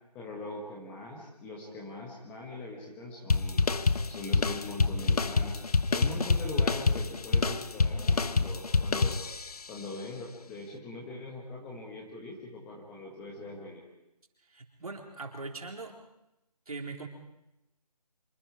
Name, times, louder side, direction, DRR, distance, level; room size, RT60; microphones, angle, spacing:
voice 1, 0.1-3.6 4.0-5.6 5.9-9.2 9.7-13.8, left 2 dB, 5° left, -2 dB, 1.4 m, -41 dB
sound 1, 3.3-9.7, left 4 dB, 65° left, 1.1 m, -27 dB
voice 2, 14.5-16.0 16.7-17.1, right 3 dB, 65° right, 2 dB, 4.0 m, -40 dB
25.5 x 22.5 x 4.8 m, 0.89 s
figure-of-eight pair, 165°, 21 cm